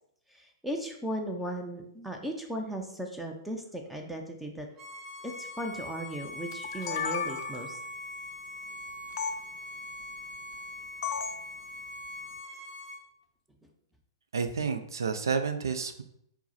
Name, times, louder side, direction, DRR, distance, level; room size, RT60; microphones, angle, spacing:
voice 1, 0.3-4.7 5.2-7.8, right 1 dB, 5° right, 2 dB, 0.5 m, -37 dB
Bowed string instrument, 4.8-13.0, left 1 dB, 20° right, 1.1 m, -42 dB
sound 1, 6.5-7.8 9.2-9.3 11.0-11.4, left 7 dB, 60° left, 0.3 m, -33 dB
voice 2, 14.3-16.0, right 5 dB, 75° right, 8 dB, 0.4 m, -30 dB
4.4 x 2.0 x 4.1 m, 0.72 s
figure-of-eight pair, 115°, 2 cm